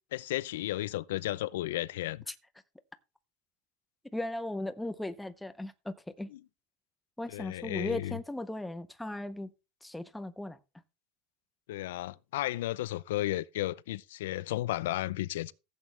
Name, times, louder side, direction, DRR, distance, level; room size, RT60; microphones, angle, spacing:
voice 1, 0.1-2.2 6.3-6.4 7.3-8.2 11.7-15.5, left 15 dB, 80° left, 0.5 m, -33 dB
voice 2, 4.1-6.3 7.2-9.5 9.8-10.6, left 1 dB, 5° left, 0.6 m, -37 dB
14.5 x 8.4 x 3.3 m
supercardioid pair, 175°, 0 cm